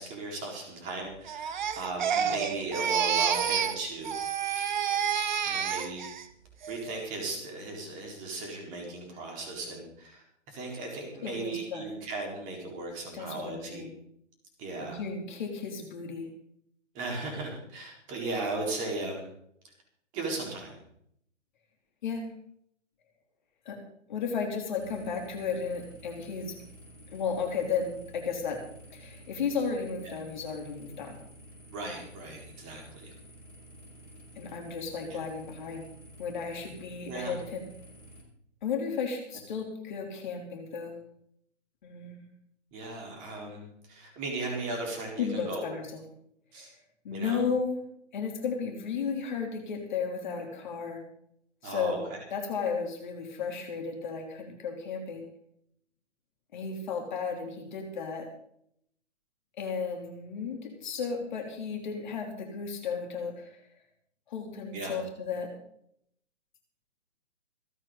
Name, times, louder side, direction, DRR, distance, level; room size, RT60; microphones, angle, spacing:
voice 1, 0.0-4.1 5.5-6.0 6.7-13.9 14.6-15.0 16.9-19.3 20.1-20.8 30.1-30.2 31.7-33.1 35.0-35.2 37.1-37.3 42.7-45.7 46.5-46.7 47.1-47.4 51.6-52.0 64.7-64.9, right 2 dB, 20° right, 1 dB, 4.2 m, -37 dB
Crying sobbing, 1.3-3.8 4.0-6.2 6.6-7.0, right 8 dB, 40° right, 1.2 m, -29 dB
voice 2, 11.1-11.9 13.1-13.9 14.8-16.3 22.0-22.2 23.6-23.8 24.1-26.5 27.1-28.6 28.9-31.2 34.3-35.8 36.2-37.6 38.6-40.9 41.8-42.3 45.2-46.0 46.5-46.7 47.0-47.8 48.1-51.0 51.6-52.0 52.3-55.2 56.5-58.3 59.6-63.6 64.3-65.5, left 5 dB, 40° left, 2 dB, 3.2 m, -34 dB
sound 1, 24.8-38.2, right 1 dB, 75° left, 5.4 m, -51 dB
26.5 x 8.9 x 3.9 m, 0.69 s
figure-of-eight pair, 130°, 37 cm